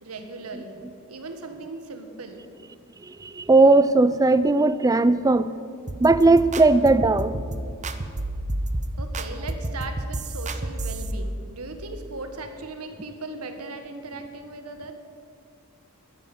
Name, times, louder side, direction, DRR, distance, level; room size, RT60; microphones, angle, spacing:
voice 1, 0.0-0.8 1.1-2.4 4.6-4.7 5.3-5.4 9.0-14.9, right 3 dB, 80° right, 7 dB, 1.6 m, -38 dB
voice 2, 3.0-5.5 6.0-7.4, right 3 dB, 15° right, 14 dB, 0.4 m, -18 dB
sound 1, 5.9-11.1, right 1 dB, 35° right, 0.8 m, -30 dB
13.5 x 9.8 x 9.1 m, 2.3 s
head